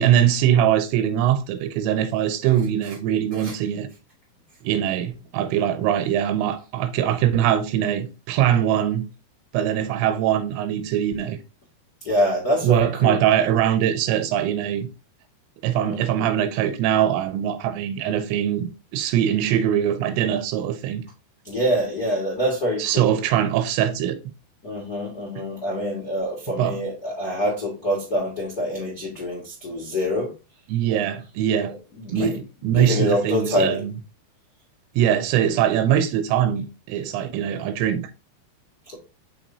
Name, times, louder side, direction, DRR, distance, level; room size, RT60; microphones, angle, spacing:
voice 1, 0.0-3.9 4.6-9.1 9.5-11.4 12.6-14.9 15.6-21.0 22.8-24.2 26.6-26.8 30.7-31.7 32.1-32.3 32.6-33.9 35.0-38.1, right 10 dB, 85° right, 2.9 m, -22 dB
voice 2, 12.0-13.2 15.8-16.0 21.4-23.2 24.6-30.3 30.8-31.1 31.6-32.4 32.7-33.8 38.9-39.0, equal, 75° left, 0.8 m, -26 dB
6.4 x 5.9 x 2.7 m
omnidirectional pair, 5.0 m